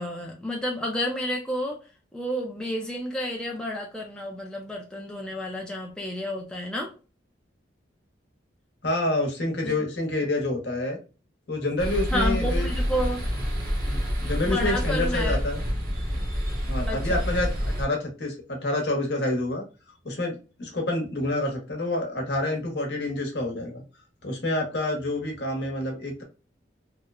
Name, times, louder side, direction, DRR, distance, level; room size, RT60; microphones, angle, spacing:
voice 1, 0.0-1.8 2.1-6.9 9.6-9.8 12.1-13.2 14.4-15.4 16.9-17.2, equal, 5° left, 0.4 m, -30 dB
voice 2, 8.8-11.0 11.5-12.7 13.9-15.6 16.7-17.5 17.8-19.6 20.0-23.8 24.2-26.2, left 1 dB, 65° left, 0.9 m, -28 dB
sound 1, 11.8-17.9, equal, 50° right, 0.8 m, -27 dB
2.9 x 2.1 x 2.3 m
head